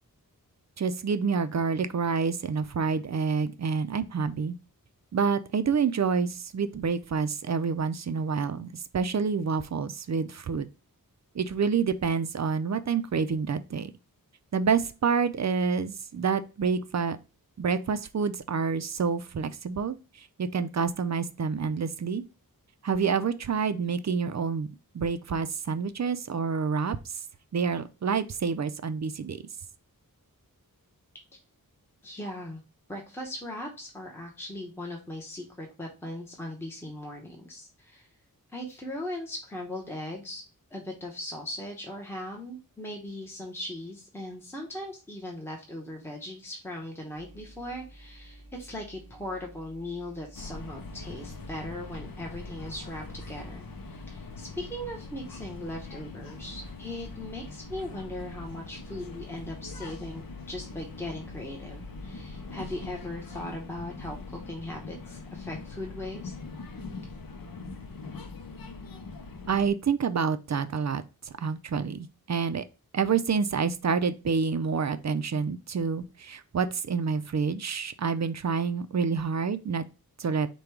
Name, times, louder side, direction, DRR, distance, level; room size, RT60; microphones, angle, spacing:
voice 1, 0.8-4.6 5.1-10.7 11.3-13.9 14.5-17.2 17.6-22.2 22.8-24.7 24.9-27.1 27.5-29.4 69.5-71.0 71.4-72.6 72.9-79.8 80.2-80.5, right 5 dB, 50° right, 0.5 m, -28 dB
voice 2, 32.0-32.6 32.9-38.1 38.5-40.4 40.7-66.3, left 1 dB, 5° left, 0.9 m, -39 dB
sound 1, 47.1-62.2, right 1 dB, 30° left, 1.5 m, -51 dB
sound 2, 50.3-69.7, left 4 dB, 65° left, 0.6 m, -42 dB
5.0 x 2.3 x 4.5 m
wide cardioid pair, 85°, 36 cm